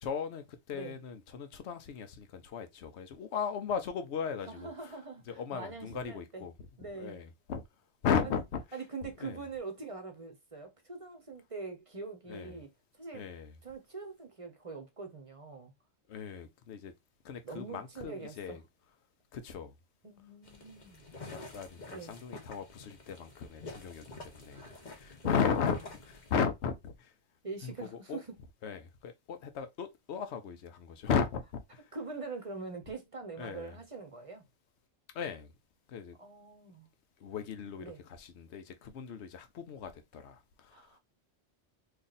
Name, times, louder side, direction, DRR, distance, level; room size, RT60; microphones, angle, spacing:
voice 1, 0.0-4.7 5.3-6.5 7.0-7.6 8.0-8.6 9.2-9.4 12.3-12.6 13.1-13.5 16.1-16.9 17.2-18.6 19.3-19.7 21.3-24.7 25.0-25.8 26.3-27.1 27.6-28.2 28.6-31.8 33.4-33.8 35.1-35.5 35.9-36.2 37.2-40.8, left 6 dB, 75° left, 1.0 m, -36 dB
voice 2, 4.5-6.4 6.8-7.2 8.2-8.4 8.7-12.7 13.0-13.3 13.6-15.7 17.4-18.6 20.0-21.0 21.9-22.2 24.5-24.8 25.2-25.3 27.4-28.3 31.9-34.4 36.2-36.9 37.8-38.0 40.7-41.0, right 4 dB, 35° right, 0.7 m, -43 dB
sound 1, 20.4-26.4, left 3 dB, 45° left, 1.0 m, -49 dB
3.2 x 2.6 x 3.9 m
omnidirectional pair, 1.2 m